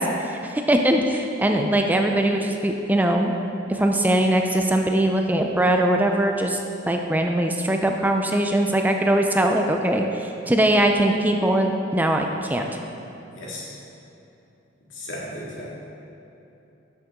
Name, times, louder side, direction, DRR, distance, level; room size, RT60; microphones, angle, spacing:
voice 1, 0.0-3.3 3.7-6.6 6.9-12.6, right 1 dB, 10° right, 3 dB, 0.4 m, -21 dB
voice 2, 13.3-13.7 14.9-15.7, left 1 dB, 80° left, -5 dB, 2.1 m, -35 dB
10.5 x 6.6 x 3.7 m, 2.9 s
head